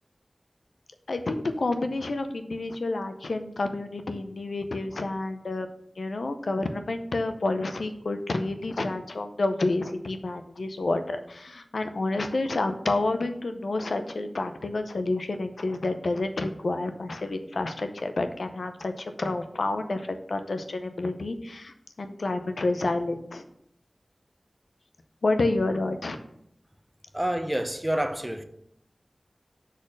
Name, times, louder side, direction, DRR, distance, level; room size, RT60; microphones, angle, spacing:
voice 1, 1.1-5.7 6.0-23.4 25.2-26.2, left 2 dB, 90° left, 0.6 m, -29 dB
voice 2, 27.1-28.4, right 1 dB, 15° right, 0.7 m, -28 dB
6.3 x 4.1 x 6.3 m
wide cardioid pair, 40°, 0 cm